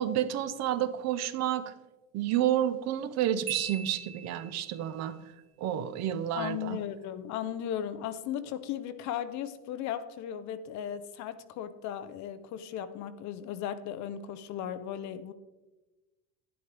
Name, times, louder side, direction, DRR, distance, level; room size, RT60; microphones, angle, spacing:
voice 1, 0.0-1.7 2.1-5.1 5.6-6.8, right 11 dB, 40° right, 0.7 m, -30 dB
Marimba xylophone, 3.5-4.9, right 9 dB, 65° right, 2.1 m, -40 dB
voice 2, 6.4-15.3, left 10 dB, 45° left, 0.7 m, -36 dB
11.5 x 11.0 x 3.4 m
cardioid pair, 150°, 40 cm